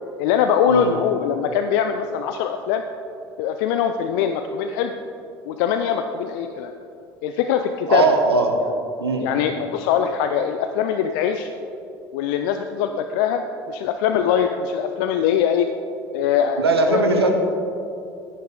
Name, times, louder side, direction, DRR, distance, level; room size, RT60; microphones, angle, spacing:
voice 1, 0.2-2.8 3.4-4.9 5.5-6.7 7.2-8.1 9.2-11.5 12.1-15.7 16.1-17.3, left 8 dB, 55° left, 7 dB, 0.4 m, -22 dB
voice 2, 7.9-8.5 9.0-9.3 16.6-17.3, right 3 dB, 80° right, 4 dB, 1.0 m, -19 dB
10.5 x 10.0 x 3.9 m, 2.7 s
figure-of-eight pair, 65°, 13 cm